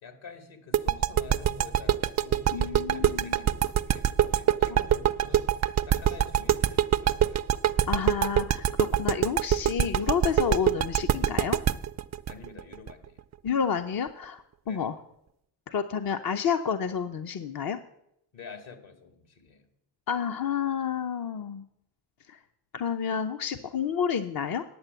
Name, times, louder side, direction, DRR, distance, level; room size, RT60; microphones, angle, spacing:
voice 1, 0.0-7.4 12.3-13.2 14.6-14.9 18.3-19.7, left 4 dB, 65° left, 7 dB, 2.3 m, -47 dB
sound 1, 0.7-13.5, right 10 dB, 35° right, 0.5 m, -24 dB
voice 2, 2.5-3.4 7.9-11.6 13.4-15.0 15.7-17.8 20.1-21.6 22.3-22.4 22.7-24.6, left 7 dB, 45° left, 7 dB, 0.8 m, -30 dB
9.7 x 6.8 x 8.0 m, 0.77 s
supercardioid pair, 50°, 49 cm